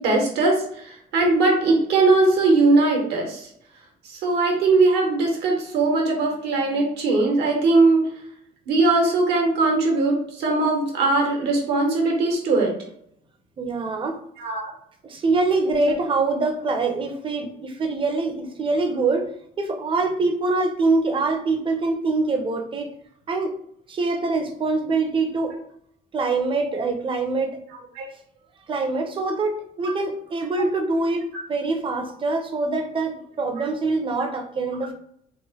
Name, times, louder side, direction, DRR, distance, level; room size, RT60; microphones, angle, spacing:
voice 1, 0.0-3.5 4.1-8.1 8.7-12.7 14.4-14.7 15.8-16.0 27.9-28.1 29.8-29.9 30.6-30.7, right 3 dB, 80° right, 1 dB, 1.0 m, -20 dB
voice 2, 13.6-14.2 15.0-19.3 19.6-22.9 23.3-23.5 23.9-25.6 26.1-27.6 28.7-34.9, right 3 dB, 30° right, 5 dB, 0.5 m, -24 dB
3.0 x 2.1 x 2.8 m, 0.67 s
cardioid pair, 110°, 17 cm